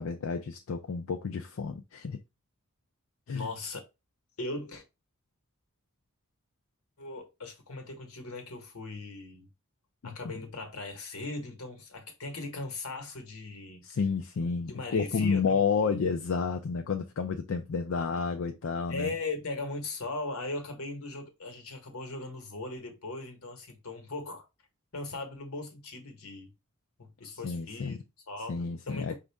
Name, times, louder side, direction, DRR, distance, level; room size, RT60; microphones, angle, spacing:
voice 1, 0.0-2.2 3.3-3.5 10.0-10.1 13.8-19.1 27.2-28.0 28.5-29.1, left 5 dB, 65° left, 0.4 m, -30 dB
voice 2, 3.3-3.8 4.4-4.8 7.0-9.5 10.0-13.9 14.7-16.0 18.9-24.4 24.9-26.5 27.0-29.2, left 2 dB, 80° left, 1.3 m, -39 dB
5.2 x 2.6 x 3.4 m
head